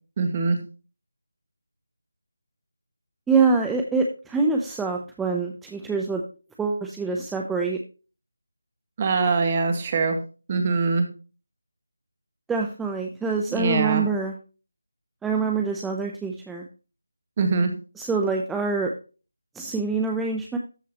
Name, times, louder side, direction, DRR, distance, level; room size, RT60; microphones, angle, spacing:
voice 1, 0.2-0.6 9.0-10.2 10.5-11.1 13.5-14.0 17.4-17.7, right 4 dB, 30° right, 6 dB, 1.8 m, -22 dB
voice 2, 3.3-6.2 6.6-7.8 12.5-14.3 15.2-16.6 18.0-18.9 19.5-20.6, right 4 dB, 5° right, 2 dB, 0.6 m, -25 dB
13.5 x 5.6 x 3.0 m, 0.33 s
figure-of-eight pair, 165°, 0 cm